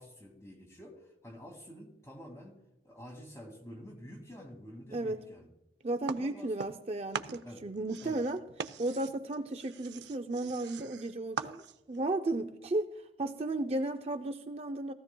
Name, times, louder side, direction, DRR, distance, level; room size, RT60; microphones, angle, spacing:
voice 1, 0.0-2.6 2.8-5.5 6.2-6.7 7.4-7.6 8.0-8.2, equal, 15° left, 2 dB, 2.1 m, -49 dB
voice 2, 5.8-8.4 8.8-12.9 13.2-14.9, right 2 dB, 35° right, 6 dB, 0.4 m, -34 dB
sound 1, 6.1-6.9 7.1-12.0, right 6 dB, 85° right, 0.5 m, -42 dB
18.5 x 14.5 x 2.2 m, 0.94 s
head